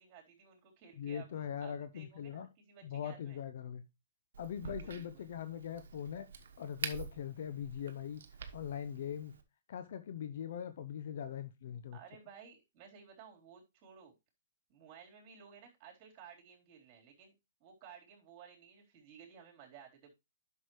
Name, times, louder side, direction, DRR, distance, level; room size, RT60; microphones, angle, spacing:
voice 1, 0.0-3.4 4.6-5.2 11.9-14.2 14.7-17.3 17.6-20.1, right 7 dB, 35° right, 3.9 m, -56 dB
voice 2, 1.0-2.5 2.8-3.9 4.4-6.3 6.6-8.2 8.5-9.4 9.7-12.0, left 8 dB, 60° left, 0.7 m, -41 dB
Crack, 4.3-9.4, right 6 dB, 70° right, 1.2 m, -47 dB
10.0 x 6.6 x 3.2 m
hypercardioid pair, 135°, 0 cm